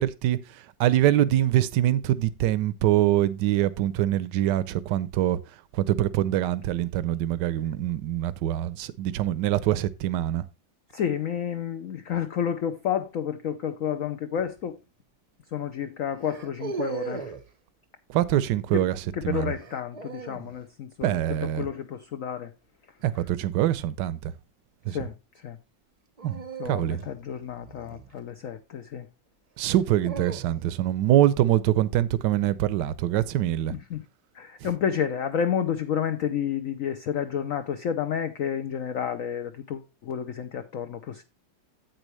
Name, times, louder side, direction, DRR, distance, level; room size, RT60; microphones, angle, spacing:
voice 1, 0.0-5.4 5.7-10.4 18.1-19.5 21.0-21.7 23.0-24.3 24.9-25.1 26.2-27.0 29.6-33.7 34.6-34.7, right 13 dB, 70° right, 1.2 m, -24 dB
voice 2, 10.9-14.7 15.5-17.2 18.7-18.8 19.3-21.1 21.6-22.5 24.9-25.1 25.4-25.6 26.6-29.0 33.9-34.0 34.4-41.2, left 8 dB, 60° left, 0.9 m, -30 dB
sound 1, 14.4-14.7 16.2-17.5 19.6-20.6 23.0-23.4 26.2-28.5 29.6-30.9, right 5 dB, 35° right, 0.6 m, -38 dB
9.0 x 8.3 x 3.2 m
omnidirectional pair, 2.0 m